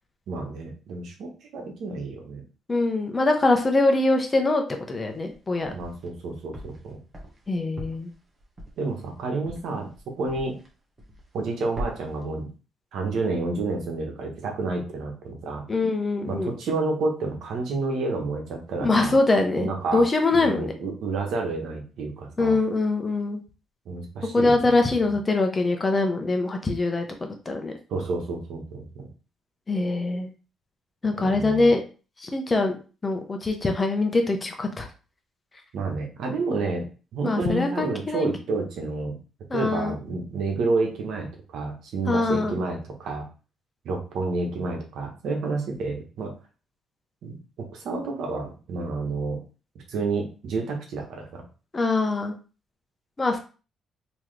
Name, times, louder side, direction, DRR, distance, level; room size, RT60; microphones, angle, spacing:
voice 1, 0.3-2.4 5.7-7.0 8.8-9.9 10.2-10.6 11.3-12.5 12.9-15.6 16.3-19.2 19.6-20.0 20.3-22.6 23.9-25.2 27.9-29.1 31.2-31.7 35.7-39.2 39.5-43.3 43.8-46.3 47.2-49.4 49.9-51.4, right 3 dB, 75° right, 2 dB, 1.2 m, -30 dB
voice 2, 2.7-5.7 7.5-8.1 15.7-16.5 18.8-20.7 22.4-23.4 24.3-27.1 27.5-27.7 29.7-30.3 31.0-31.8 32.2-32.8 33.0-34.9 37.2-38.3 39.5-40.0 42.1-42.5 51.7-52.3 53.2-53.4, left 2 dB, 25° left, 4 dB, 0.9 m, -23 dB
sound 1, 5.1-6.1 6.5-10.7 11.0-11.5 11.7-12.2, equal, 35° right, 1.3 m, -40 dB
3.7 x 3.0 x 3.3 m, 0.35 s
cardioid pair, 90°, 0 cm